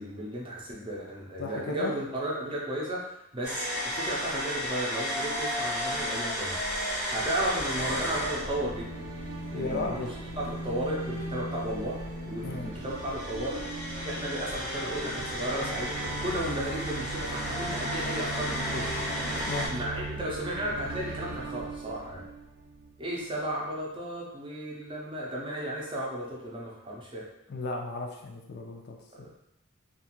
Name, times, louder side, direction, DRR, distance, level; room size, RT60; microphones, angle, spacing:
voice 1, 0.0-8.9 9.5-10.1 10.4-12.0 12.2-13.6 14.0-19.0 19.6-22.2 23.0-27.3 29.1-29.3, right 1 dB, 25° right, -3 dB, 0.5 m, -34 dB
voice 2, 1.4-1.9 9.5-10.1 12.4-12.7 19.4-19.7 27.5-29.3, left 3 dB, 50° left, 2 dB, 0.3 m, -35 dB
sound 1, 3.4-19.7, equal, 15° left, 0.7 m, -34 dB
sound 2, 6.9-23.0, right 2 dB, 75° right, 0.5 m, -39 dB
2.4 x 2.4 x 2.9 m, 0.82 s
head